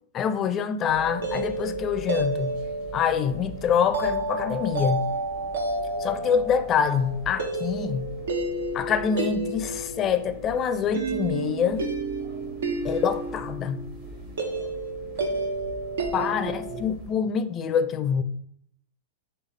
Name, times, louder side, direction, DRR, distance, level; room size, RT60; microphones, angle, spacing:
voice 1, 0.1-2.6 2.9-5.1 6.0-8.1 8.7-11.9 12.8-13.8 16.1-18.2, left 7 dB, 30° left, 0.4 m, -25 dB
sound 1, 0.8-17.1, right 1 dB, 50° right, 1.6 m, -44 dB
sound 2, 1.0-16.8, right 2 dB, 80° right, 0.9 m, -31 dB
sound 3, 3.7-11.8, left 5 dB, 90° left, 0.5 m, -48 dB
voice 2, 14.5-16.9, right 3 dB, 20° right, 0.6 m, -46 dB
6.3 x 2.3 x 3.2 m
hypercardioid pair, 125°, 0 cm